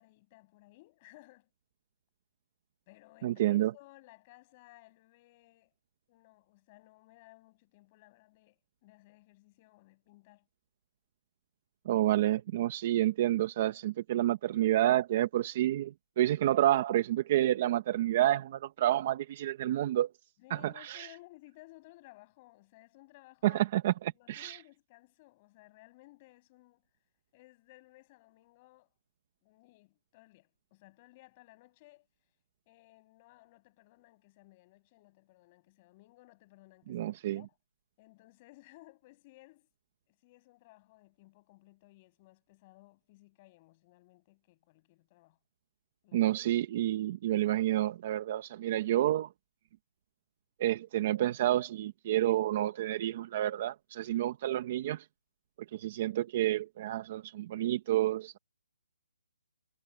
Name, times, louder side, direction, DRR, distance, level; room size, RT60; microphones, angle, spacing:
voice 1, 0.0-1.5 2.9-5.7 6.1-10.4 20.4-23.7 24.1-26.8 27.3-28.9 29.4-32.1 32.7-37.6 38.0-39.7 40.1-45.4 46.0-46.3, left 20 dB, 20° left, 6.6 m, -59 dB
voice 2, 3.2-3.7 11.8-20.1 20.5-21.1 23.4-23.9 24.3-24.6 36.9-37.4 46.1-49.3 50.6-55.1 55.7-58.4, right 13 dB, 25° right, 1.0 m, -29 dB
hypercardioid pair, 175°, 0 cm